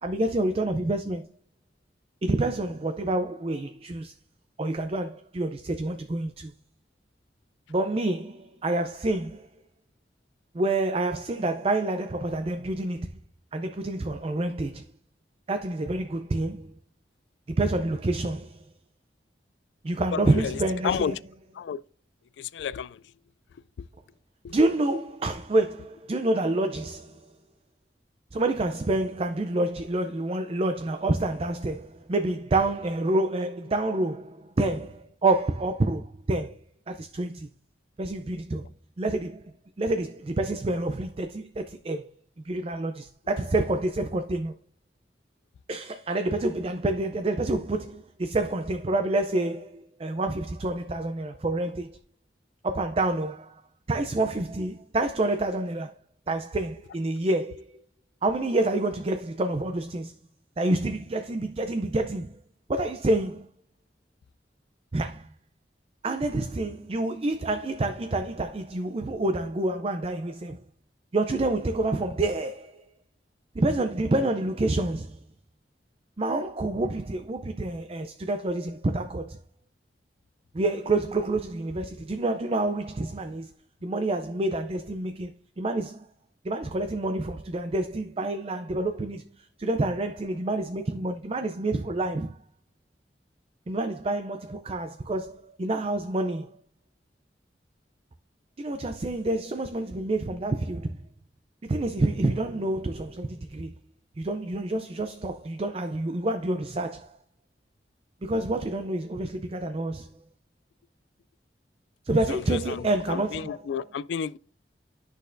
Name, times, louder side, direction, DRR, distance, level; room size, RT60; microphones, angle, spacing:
voice 1, 0.0-1.3 2.2-4.1 4.6-6.5 7.7-9.5 10.5-13.2 13.5-14.9 15.5-16.7 17.5-18.6 19.8-21.2 24.5-27.3 28.3-36.6 36.9-37.5 38.0-38.7 39.0-39.5 39.8-42.0 42.4-44.5 45.7-52.0 52.6-53.6 53.9-55.9 56.3-57.7 58.2-60.1 60.6-62.4 62.7-63.5 64.9-65.3 66.0-70.6 71.1-72.8 73.5-75.2 76.2-79.4 80.5-83.5 83.8-85.3 85.6-86.1 86.4-92.4 93.7-96.6 98.6-101.0 101.6-103.7 104.2-107.2 108.2-110.1 112.0-113.6, right 2 dB, 35° right, 0.4 m, -28 dB
voice 2, 20.1-21.2 21.5-21.8 22.4-23.0 23.8-23.9 24.4-24.5 112.3-114.4, left 7 dB, 85° left, 0.3 m, -32 dB
10.5 x 6.5 x 2.6 m
head